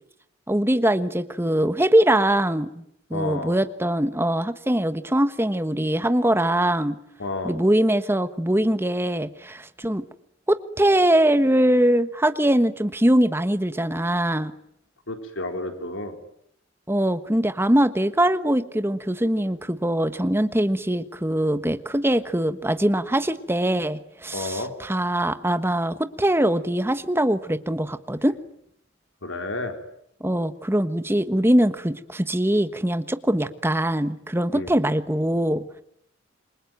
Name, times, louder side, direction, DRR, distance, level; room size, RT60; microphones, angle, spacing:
voice 1, 0.5-2.8 3.1-7.0 7.4-10.0 10.5-14.5 16.9-28.4 30.2-35.6, right 1 dB, 10° right, 11 dB, 1.3 m, -22 dB
voice 2, 3.1-3.5 7.2-7.6 15.1-16.2 24.3-24.7 29.2-29.8 34.5-34.7, left 2 dB, 80° left, 5 dB, 4.1 m, -30 dB
28.0 x 23.0 x 9.3 m, 0.74 s
head